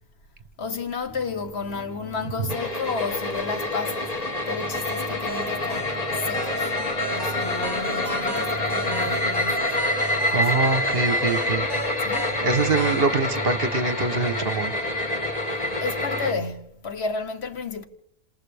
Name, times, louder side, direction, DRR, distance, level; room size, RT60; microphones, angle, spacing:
voice 1, 0.6-4.1 4.5-6.0 6.2-6.7 7.1-9.8 10.3-10.6 12.0-12.4 15.8-17.9, left 4 dB, 55° left, 1.4 m, -32 dB
sound 1, 1.1-16.5, right 3 dB, 5° left, 7.7 m, -40 dB
sound 2, 2.5-16.3, left 2 dB, 30° left, 1.8 m, -27 dB
sound 3, 4.8-13.1, right 3 dB, 20° right, 1.2 m, -35 dB
voice 2, 10.0-11.7 12.4-14.7, right 4 dB, 50° right, 1.2 m, -24 dB
28.0 x 27.5 x 3.5 m
omnidirectional pair, 1.3 m